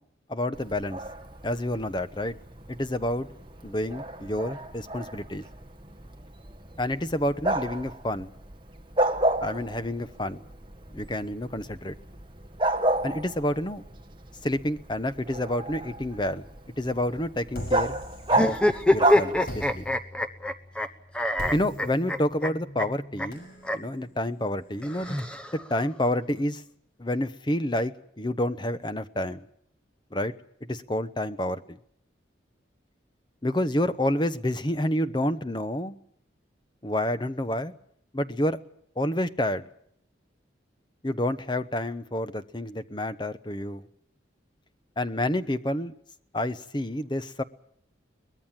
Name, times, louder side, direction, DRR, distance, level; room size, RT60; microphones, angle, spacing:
voice 1, 0.3-1.0 1.4-2.4 2.7-3.3 3.6-5.4 6.8-8.3 9.4-10.4 10.9-11.9 13.0-13.8 14.4-16.4 16.8-18.0 18.4-18.6 18.9-19.8 21.5-23.5 23.7-25.2 25.5-26.6 27.0-29.4 30.1-30.3 30.6-31.8 33.4-36.0 36.8-37.7 38.1-38.6 39.0-39.6 41.0-43.9 45.0-45.9 46.3-47.4, left 1 dB, 25° left, 12 dB, 0.9 m, -29 dB
Bark, 0.5-19.9, right 1 dB, 25° right, 1.5 m, -32 dB
sound 1, 17.5-18.9 19.4-25.2, equal, 55° left, 6.4 m, -42 dB
sound 2, 18.3-20.9 21.1-22.5 22.8-22.9 23.2-23.3 23.6-23.8 24.8-25.8, left 1 dB, 5° left, 1.0 m, -25 dB
23.0 x 20.0 x 7.4 m, 0.71 s
head